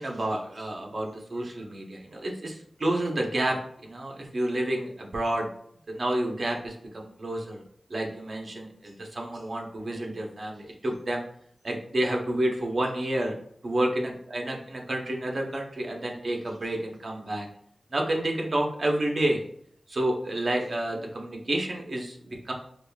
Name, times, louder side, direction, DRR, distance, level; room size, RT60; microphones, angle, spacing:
voice 1, 0.0-5.5 5.9-7.6 7.9-11.2 11.6-13.3 13.6-17.5 17.9-19.4 19.9-22.5, right 1 dB, 55° right, 1 dB, 0.8 m, -29 dB
4.9 x 2.3 x 2.3 m, 0.65 s
wide cardioid pair, 60°, 0 cm